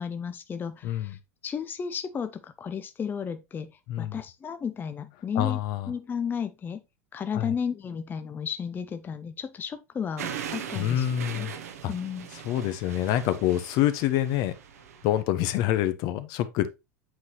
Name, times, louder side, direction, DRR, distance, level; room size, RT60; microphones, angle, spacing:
voice 1, 0.0-5.6 5.9-6.8 7.1-11.1 11.3-11.5 11.9-12.3, left 7 dB, 25° left, 0.5 m, -33 dB
voice 2, 0.8-1.1 3.9-4.2 5.4-5.9 7.3-7.5 10.7-11.5 11.8-11.9 12.4-14.5 15.0-16.7, left 12 dB, 55° left, 0.7 m, -26 dB
sound 1, 10.2-15.2, right 8 dB, 80° right, 0.8 m, -40 dB
7.8 x 4.1 x 2.9 m
hypercardioid pair, 85°, 8 cm